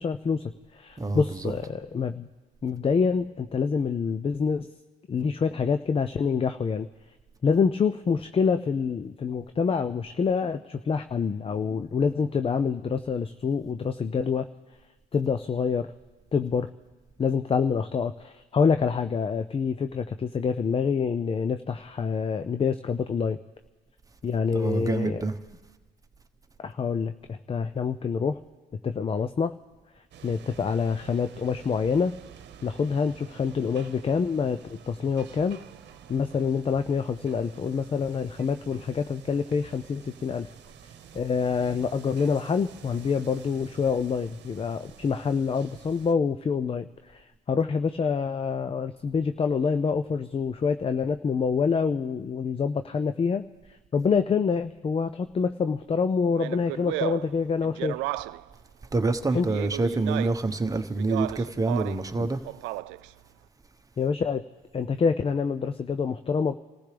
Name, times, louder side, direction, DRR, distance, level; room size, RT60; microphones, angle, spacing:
voice 1, 0.0-2.3 2.6-4.7 5.1-6.9 7.4-14.5 15.1-15.9 16.3-16.7 17.2-23.4 24.2-25.2 26.6-28.4 28.8-29.6 30.2-32.2 32.6-35.6 36.1-40.5 41.1-53.5 53.9-58.0 59.3-59.5 62.2-62.3 64.0-64.4 64.7-66.5, left 5 dB, 30° left, 0.5 m, -26 dB
voice 2, 1.0-1.5 24.5-25.4 58.9-62.4, right 3 dB, 20° right, 1.1 m, -27 dB
sound 1, 30.1-46.1, right 8 dB, 65° right, 1.1 m, -49 dB
Speech, 56.3-58.5 59.3-60.5 61.0-62.1 62.4-63.1, right 18 dB, 80° right, 0.4 m, -34 dB
27.0 x 15.0 x 3.4 m
supercardioid pair, 75°, 20 cm